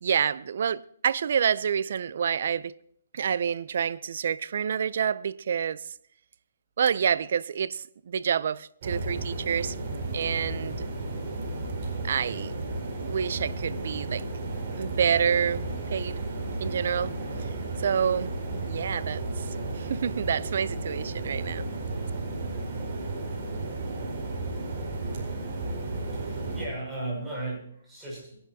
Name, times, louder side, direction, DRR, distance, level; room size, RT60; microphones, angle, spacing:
voice 1, 0.0-2.7 3.1-5.8 6.8-9.7 10.1-10.9 12.0-12.6 13.0-14.2 14.8-15.6 15.9-16.2 16.6-17.1 17.8-18.3 18.6-19.4 19.8-21.6, right 7 dB, 55° right, 0.5 m, -28 dB
sound 1, 8.8-26.7, right 2 dB, 40° right, 4.7 m, -33 dB
voice 2, 26.1-28.4, right 2 dB, 10° right, 6.0 m, -36 dB
21.0 x 11.0 x 2.8 m
hypercardioid pair, 170°, 0 cm